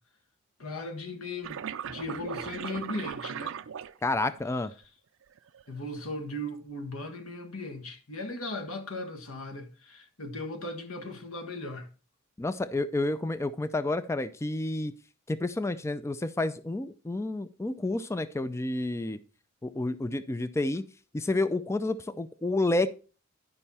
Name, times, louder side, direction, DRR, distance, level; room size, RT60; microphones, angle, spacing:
voice 1, 0.6-3.5 5.7-11.9, left 2 dB, 70° left, 1.5 m, -37 dB
sound 1, 1.4-4.4 5.2-5.7, right 8 dB, 60° right, 0.4 m, -38 dB
voice 2, 4.0-4.7 12.4-14.9 15.3-19.2 19.6-20.8 21.1-22.9, left 2 dB, 10° left, 0.3 m, -30 dB
11.0 x 5.4 x 4.2 m
head